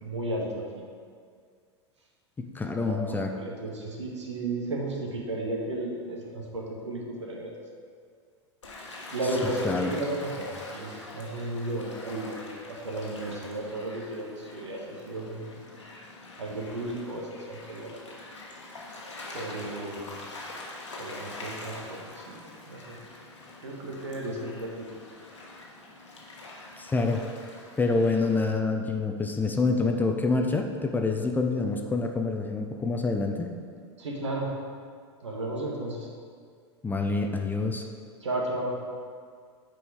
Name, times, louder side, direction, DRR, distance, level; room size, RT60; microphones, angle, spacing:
voice 1, 0.0-0.8 2.8-7.5 9.1-12.4 12.7-15.5 16.4-17.9 19.3-20.1 21.0-22.4 22.7-23.0 23.6-24.9 34.0-34.5 35.2-36.1 38.2-38.8, right 2 dB, 75° right, -1 dB, 1.4 m, -34 dB
voice 2, 2.5-3.3 9.6-9.9 26.8-27.2 27.8-33.5 36.8-37.9, left 3 dB, 10° left, 3 dB, 0.6 m, -27 dB
Gull seagull / Waves surf, 8.6-28.5, left 2 dB, 80° left, 1.3 m, -44 dB
8.1 x 4.6 x 4.9 m, 2.1 s
figure-of-eight pair, 85°, 15 cm